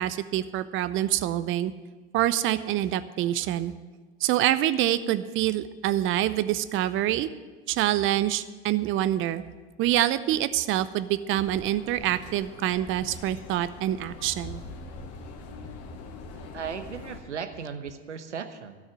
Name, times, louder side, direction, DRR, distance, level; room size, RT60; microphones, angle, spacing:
voice 1, 0.0-1.7 2.1-3.7 4.2-7.3 7.7-9.4 9.8-14.6, right 13 dB, 35° right, 14 dB, 0.7 m, -26 dB
sound 1, 11.3-17.2, left 3 dB, 45° left, 1.8 m, -43 dB
voice 2, 16.5-18.8, right 7 dB, 85° right, 9 dB, 1.0 m, -36 dB
13.0 x 6.4 x 9.1 m, 1.4 s
hypercardioid pair, 90°, 34 cm